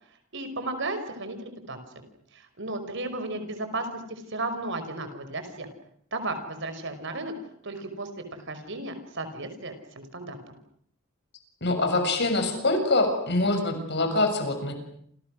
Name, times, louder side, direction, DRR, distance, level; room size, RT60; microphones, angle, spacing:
voice 1, 0.3-1.8 2.3-5.7 6.1-7.3 7.6-10.6, right 2 dB, 65° right, 8 dB, 5.3 m, -34 dB
voice 2, 11.6-14.7, left 2 dB, 55° left, 6 dB, 7.0 m, -24 dB
29.5 x 28.5 x 6.5 m, 0.67 s
head